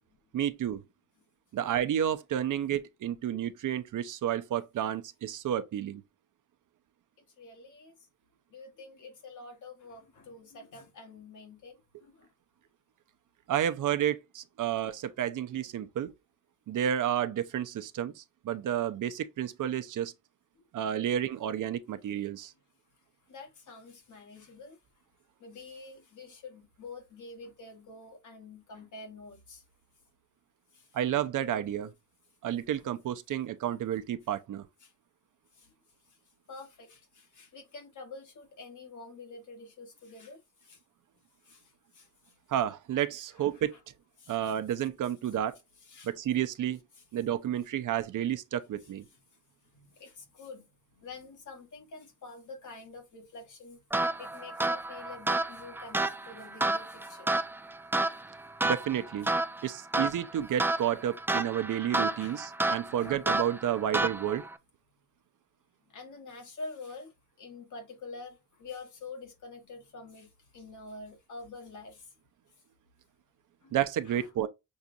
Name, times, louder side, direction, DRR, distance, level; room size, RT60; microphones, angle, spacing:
voice 1, 0.3-0.8 1.5-6.0 13.5-16.1 16.7-20.1 20.7-22.5 30.9-31.9 32.4-34.7 42.5-43.8 44.3-45.6 46.0-46.8 47.1-49.0 58.6-59.3 59.6-64.5 73.7-74.5, right 10 dB, 65° right, 0.6 m, -31 dB
voice 2, 7.4-7.9 8.5-12.3 21.0-21.3 23.3-24.8 25.4-29.6 30.7-30.9 32.8-32.9 34.8-34.9 35.5-35.7 36.5-40.8 41.4-42.1 43.4-43.8 44.2-44.5 45.9-46.1 49.7-50.6 50.9-53.8 54.2-57.4 62.1-62.4 62.9-63.3 65.9-67.1 67.4-72.1 73.6-73.7 74.1-74.2, left 3 dB, 60° left, 1.7 m, -47 dB
sound 1, 53.9-64.6, right 2 dB, 5° right, 0.3 m, -31 dB
6.3 x 2.4 x 2.7 m
cardioid pair, 120°, 34 cm